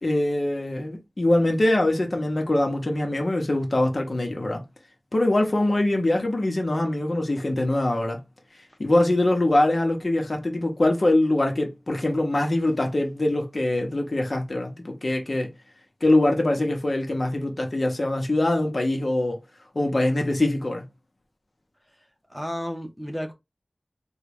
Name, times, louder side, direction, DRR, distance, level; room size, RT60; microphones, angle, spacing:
voice 1, 0.0-4.6 5.1-8.2 8.8-15.5 16.0-19.4 19.7-20.8, left 1 dB, 60° left, 1.0 m, -23 dB
voice 2, 21.9-23.3, equal, ahead, 0.8 m, -33 dB
3.7 x 2.3 x 3.4 m
wide cardioid pair, 50°, 0 cm